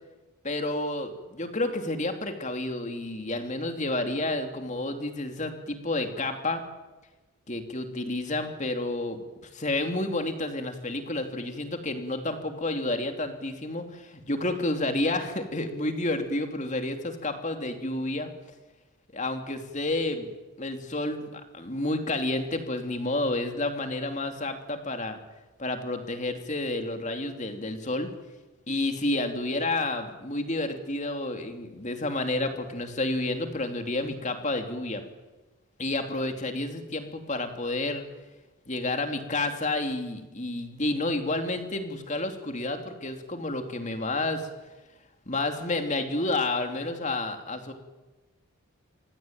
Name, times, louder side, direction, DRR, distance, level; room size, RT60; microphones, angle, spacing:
voice 1, 0.4-6.6 7.5-9.2 9.5-18.3 19.1-20.3 20.6-25.2 25.6-28.1 28.7-35.0 35.8-38.0 38.7-44.5 45.3-47.7, left 2 dB, 35° left, 6 dB, 3.0 m, -30 dB
27.5 x 24.0 x 9.0 m, 1.1 s
head